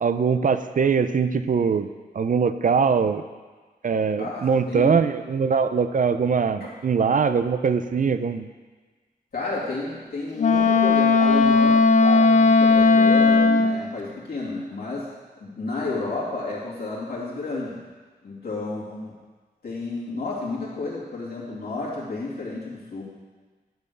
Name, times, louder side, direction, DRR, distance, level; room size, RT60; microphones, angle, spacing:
voice 1, 0.0-1.9 2.1-3.2 3.8-8.5, right 6 dB, 55° right, 11 dB, 0.5 m, -22 dB
voice 2, 4.2-4.9 6.6-6.7 9.3-15.1 15.4-17.8 18.2-19.2 19.6-23.0, left 3 dB, 70° left, -6 dB, 2.6 m, -31 dB
Wind instrument woodwind instrument, 10.4-13.8, left 3 dB, 50° left, 0.4 m, -17 dB
10.5 x 4.3 x 6.8 m, 1.4 s
wide cardioid pair, 90°, 17 cm